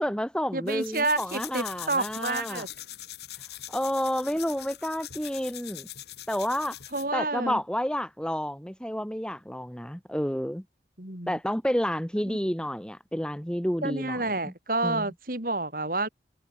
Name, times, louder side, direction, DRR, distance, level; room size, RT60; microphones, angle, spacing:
voice 1, 0.0-2.7 3.7-5.9 6.3-6.8 7.1-10.6 11.3-14.5 14.8-15.1, equal, 5° left, 2.0 m, -30 dB
voice 2, 0.5-2.7 6.9-7.6 11.0-11.4 12.3-12.4 13.8-16.1, right 2 dB, 50° right, 5.0 m, -29 dB
sound 1, 0.7-7.1, left 13 dB, 70° left, 7.8 m, -42 dB
head